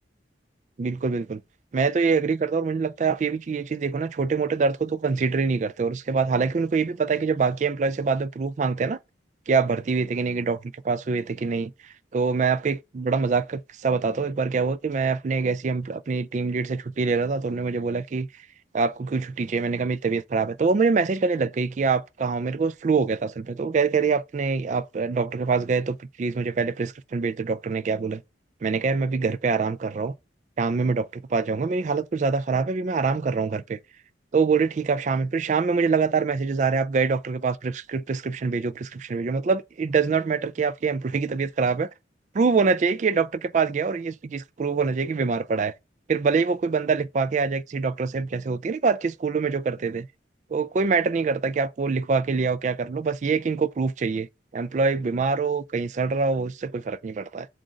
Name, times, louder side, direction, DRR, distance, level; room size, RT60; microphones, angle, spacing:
voice 1, 0.8-1.4 1.7-9.0 9.5-11.7 12.1-18.3 18.7-28.2 28.6-30.1 30.6-33.8 34.3-41.9 42.3-45.7 46.1-50.1 50.5-54.3 54.5-57.5, right 4 dB, 40° right, 0.3 m, -25 dB
7.7 x 2.6 x 4.9 m
head